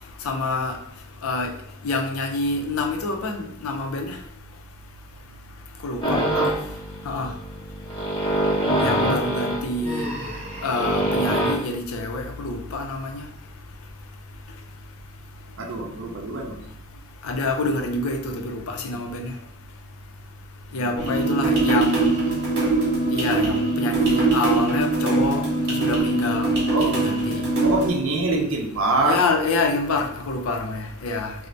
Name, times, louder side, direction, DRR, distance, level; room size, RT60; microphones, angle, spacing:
voice 1, 0.2-0.8 1.2-1.5 1.8-4.2 5.8-6.2 7.1-7.3 8.8-10.1 10.6-13.3 17.2-19.3 20.7-22.1 23.1-25.4 25.7-26.5 26.8-27.4 29.0-31.3, left 3 dB, 80° left, 5 dB, 0.4 m, -26 dB
sound 1, 6.0-11.5, right 1 dB, 20° left, 0.6 m, -25 dB
voice 2, 6.2-6.6 15.6-16.7 26.7-27.0 27.6-29.2, right 2 dB, 70° right, 1 dB, 0.6 m, -25 dB
Human voice, 9.8-11.7, equal, 30° right, 0.6 m, -36 dB
sound 2, 21.0-27.9, right 3 dB, 50° right, 1.0 m, -22 dB
2.5 x 2.0 x 3.0 m, 0.73 s
head